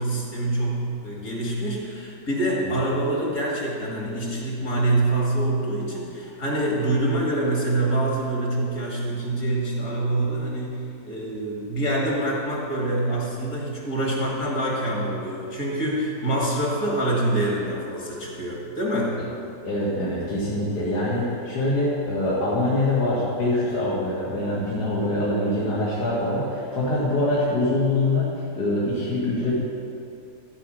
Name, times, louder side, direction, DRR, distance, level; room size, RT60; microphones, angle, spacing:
voice 1, 0.0-19.2, right 1 dB, 60° left, -3 dB, 2.8 m, -25 dB
voice 2, 19.6-28.3 28.6-29.6, left 1 dB, 75° left, -8 dB, 2.6 m, -24 dB
14.0 x 5.0 x 7.6 m, 2.5 s
omnidirectional pair, 1.8 m